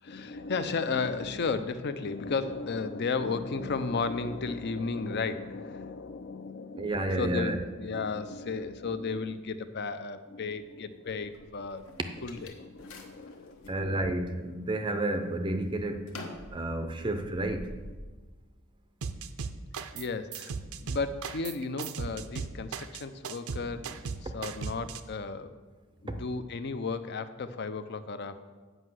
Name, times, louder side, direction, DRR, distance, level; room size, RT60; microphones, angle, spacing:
voice 1, 0.0-11.8 12.2-14.1 19.9-20.5 20.8-25.5 26.0-28.5, left 4 dB, 50° left, 11 dB, 0.6 m, -34 dB
voice 2, 6.8-7.6 13.7-16.1 16.5-17.7, right 1 dB, 20° right, 7 dB, 0.5 m, -30 dB
sound 1, 11.1-13.8 14.3-14.9 15.2-18.0, left 2 dB, 65° left, 1.2 m, -47 dB
sound 2, 19.0-20.1 20.3-25.0, right 5 dB, 70° right, 0.6 m, -37 dB
7.9 x 5.4 x 7.7 m, 1.3 s
head